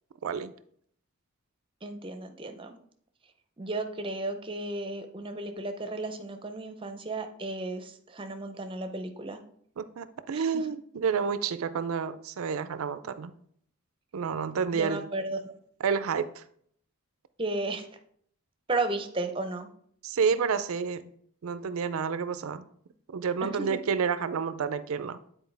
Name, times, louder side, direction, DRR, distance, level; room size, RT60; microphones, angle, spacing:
voice 1, 1.8-2.8 3.6-9.4 10.3-10.4 14.7-15.5 17.4-17.9 18.7-19.7 23.4-23.8, right 2 dB, 25° right, 0.6 m, -34 dB
voice 2, 9.8-13.3 14.1-15.0 15.8-16.4 20.0-21.1 21.4-22.7 23.1-25.2, right 6 dB, 70° right, 0.4 m, -29 dB
9.3 x 4.3 x 3.3 m
head